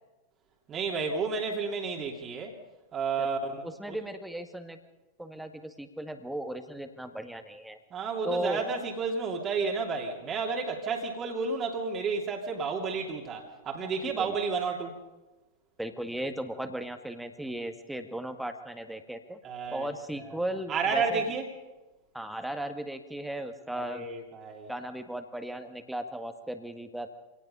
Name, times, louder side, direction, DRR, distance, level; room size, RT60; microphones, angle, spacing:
voice 1, 0.7-2.6 2.9-4.0 7.9-15.0 19.4-19.9 20.7-21.5 23.7-24.7, right 4 dB, 25° right, 1 dB, 2.8 m, -31 dB
voice 2, 3.6-4.8 5.2-7.8 8.2-8.6 14.0-14.4 15.8-19.4 19.7-21.2 22.1-24.1 24.7-27.1, right 1 dB, 5° right, 7 dB, 1.8 m, -36 dB
26.0 x 18.5 x 5.5 m, 1.1 s
figure-of-eight pair, 90°, 0 cm